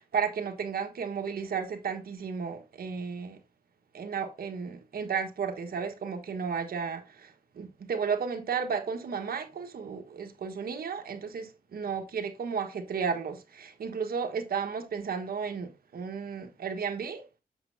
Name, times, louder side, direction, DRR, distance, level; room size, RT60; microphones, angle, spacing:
voice 1, 0.0-3.4 3.9-17.2, right 6 dB, 80° right, 1.3 m, -33 dB
7.8 x 7.3 x 2.7 m
wide cardioid pair, 90°, 15 cm